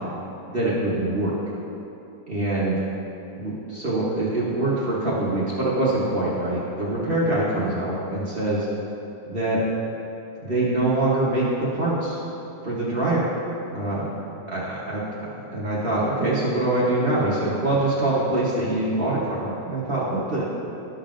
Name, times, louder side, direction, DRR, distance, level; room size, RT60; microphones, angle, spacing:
voice 1, 0.5-1.3 2.3-2.8 3.4-8.7 9.3-9.6 10.4-12.2 12.6-13.3 13.7-14.1 14.5-20.4, right 2 dB, 40° right, -8 dB, 1.0 m, -24 dB
12.0 x 5.4 x 2.5 m, 2.9 s
omnidirectional pair, 1.9 m